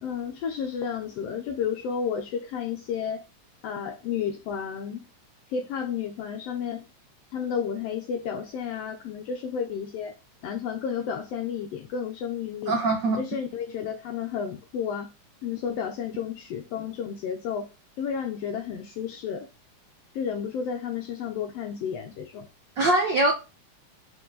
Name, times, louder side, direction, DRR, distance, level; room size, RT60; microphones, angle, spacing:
voice 1, 0.0-3.3 3.6-5.0 5.5-6.9 7.3-10.2 10.4-12.8 13.2-15.1 15.4-17.7 18.0-19.5 20.1-22.5, left 7 dB, 75° left, 1.4 m, -32 dB
voice 2, 12.7-13.3 22.8-23.3, right 2 dB, 85° right, 0.9 m, -22 dB
6.0 x 5.1 x 3.9 m
omnidirectional pair, 3.6 m